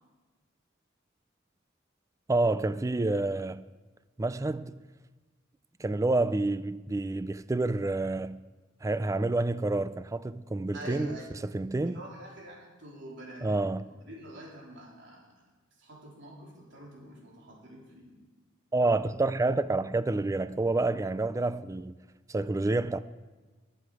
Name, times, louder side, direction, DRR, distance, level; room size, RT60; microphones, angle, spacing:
voice 1, 2.3-3.6 4.2-4.8 5.8-8.4 8.8-11.2 11.5-12.0 13.4-13.8 18.7-22.0 22.3-23.0, right 2 dB, 15° right, 0.3 m, -28 dB
voice 2, 10.7-11.4 11.9-13.6 14.0-15.5 15.7-18.2, right 1 dB, 60° right, 3.7 m, -46 dB
20.5 x 7.8 x 4.8 m
head